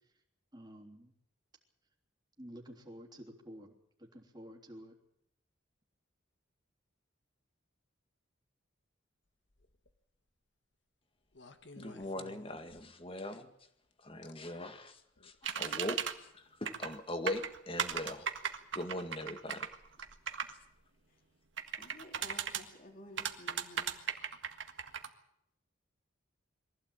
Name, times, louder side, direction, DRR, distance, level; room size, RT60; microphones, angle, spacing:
voice 1, 0.5-1.1 2.4-4.9, equal, 20° right, 2 dB, 3.3 m, -51 dB
sound 1, 9.5-10.0 11.3-13.1 14.2-14.3 15.2-15.4, left 3 dB, 60° left, 1.6 m, -55 dB
voice 2, 11.8-13.5 14.0-16.0 16.3-18.3 18.7-19.7, left 1 dB, 30° left, 8 dB, 1.9 m, -40 dB
sound 2, 15.4-16.1 16.6-16.9 17.3-20.5 21.6-22.6 23.2-25.1, right 7 dB, 70° right, 1.7 m, -36 dB
voice 3, 21.8-24.0, left 1 dB, 45° left, 1 dB, 4.0 m, -53 dB
23.0 x 15.5 x 8.8 m, 0.75 s
head